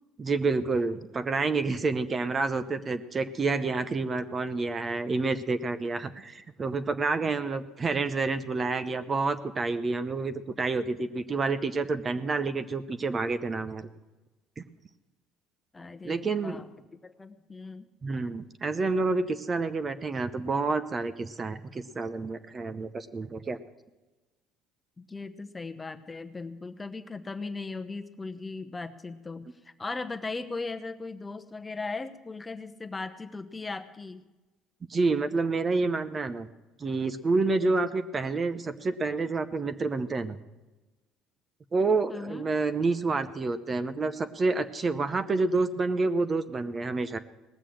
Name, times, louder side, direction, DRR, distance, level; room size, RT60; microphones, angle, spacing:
voice 1, 0.2-13.9 14.6-14.7 16.0-16.6 18.0-23.6 34.9-36.5 36.8-40.4 41.7-47.2, right 3 dB, 30° right, 11 dB, 0.7 m, -28 dB
voice 2, 15.7-16.7 17.0-17.9 25.0-34.2 42.1-42.5, left 3 dB, 20° left, 8 dB, 0.9 m, -38 dB
18.5 x 6.8 x 7.5 m, 1.1 s
supercardioid pair, 95°, 0 cm